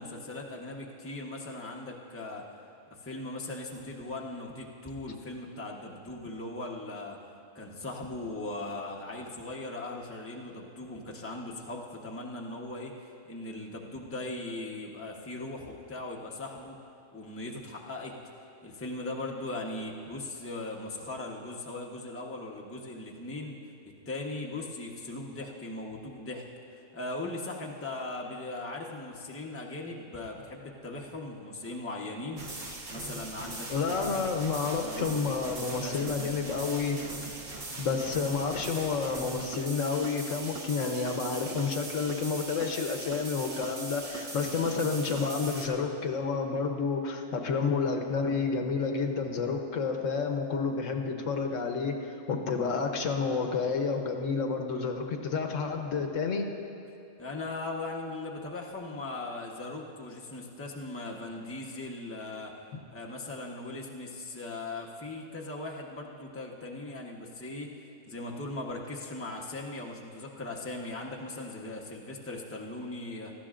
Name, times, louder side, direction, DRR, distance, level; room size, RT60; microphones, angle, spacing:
voice 1, 0.0-2.4 2.9-7.2 7.5-16.8 17.1-18.2 18.6-23.6 24.1-26.5 26.7-32.4 32.9-34.3 34.8-36.6 57.2-62.5 62.9-73.3, left 2 dB, 10° left, -2 dB, 0.9 m, -39 dB
sound 1, 32.4-45.7, right 2 dB, 70° right, 1.7 m, -40 dB
voice 2, 33.7-37.0 37.8-52.0 52.3-56.5, left 5 dB, 75° left, 4 dB, 1.2 m, -30 dB
18.5 x 14.0 x 2.5 m, 2.7 s
omnidirectional pair, 1.4 m